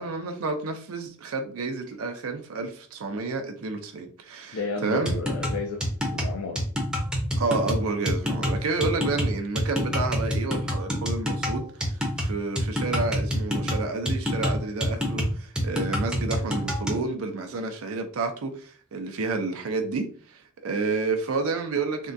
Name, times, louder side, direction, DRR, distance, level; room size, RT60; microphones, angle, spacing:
voice 1, 0.0-5.2 7.4-22.1, right 3 dB, 80° right, 0.5 m, -30 dB
voice 2, 4.5-6.7, left 4 dB, 80° left, 0.4 m, -33 dB
sound 1, 5.0-17.0, equal, 5° right, 0.6 m, -27 dB
3.5 x 2.2 x 2.6 m
head